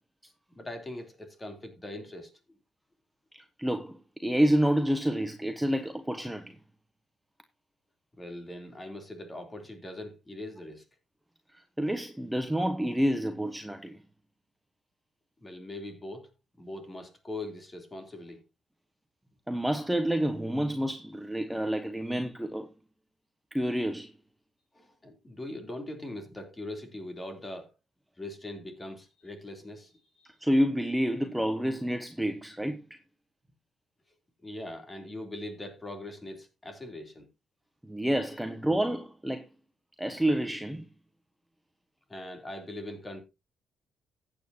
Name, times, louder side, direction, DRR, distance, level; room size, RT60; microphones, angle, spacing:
voice 1, 0.5-2.4 8.2-10.8 15.4-18.4 24.7-27.7 28.2-30.3 34.4-37.3 38.4-38.5 42.1-43.2, left 1 dB, 20° left, 3.2 m, -41 dB
voice 2, 3.3-6.5 11.5-14.0 19.5-22.7 23.5-24.1 30.4-33.0 37.8-39.4 40.0-40.8, equal, 5° right, 1.1 m, -29 dB
14.5 x 8.8 x 2.8 m
cardioid pair, 90°, 0 cm